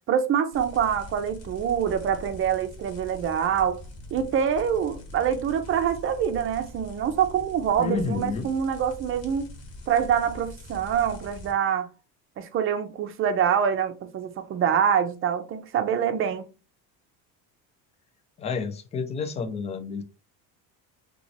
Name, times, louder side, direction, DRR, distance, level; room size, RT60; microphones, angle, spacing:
voice 1, 0.1-3.8 4.1-9.5 9.9-11.9 12.4-16.5, right 8 dB, 30° right, 0.5 m, -25 dB
sound 1, 0.5-11.5, left 1 dB, 40° left, 1.1 m, -43 dB
voice 2, 7.8-8.5 18.4-20.0, left 4 dB, 15° left, 0.3 m, -30 dB
3.1 x 3.0 x 2.6 m
supercardioid pair, 125°, 40 cm